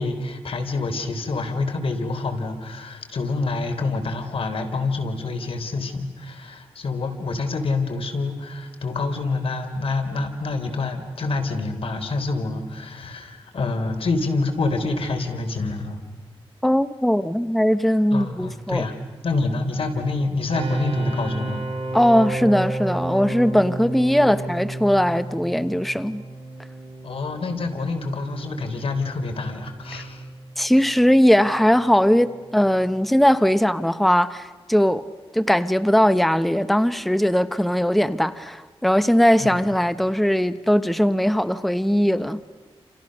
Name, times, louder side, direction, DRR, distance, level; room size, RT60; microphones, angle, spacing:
voice 1, 0.0-16.0 18.1-19.0 19.2-21.6 27.0-30.2 39.4-39.6, left 3 dB, 65° left, 3.8 m, -27 dB
voice 2, 16.6-18.9 21.9-26.2 30.6-35.1 35.3-42.4, equal, ahead, 0.9 m, -19 dB
sound 1, 20.5-33.3, right 2 dB, 70° right, 6.6 m, -32 dB
28.5 x 28.5 x 6.5 m
cardioid pair, 80°, 10 cm